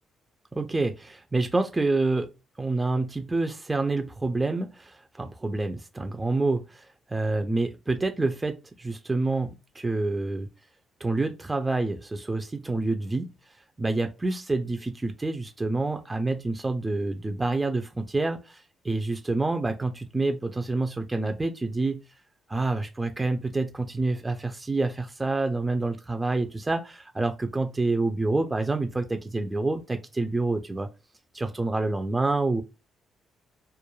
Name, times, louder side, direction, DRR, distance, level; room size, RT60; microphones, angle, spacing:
voice 1, 0.5-2.3 2.6-10.5 11.0-13.3 13.8-22.0 22.5-30.9 31.3-32.6, right 2 dB, 15° right, 0.3 m, -27 dB
2.2 x 2.1 x 2.9 m
cardioid pair, 90°, 0 cm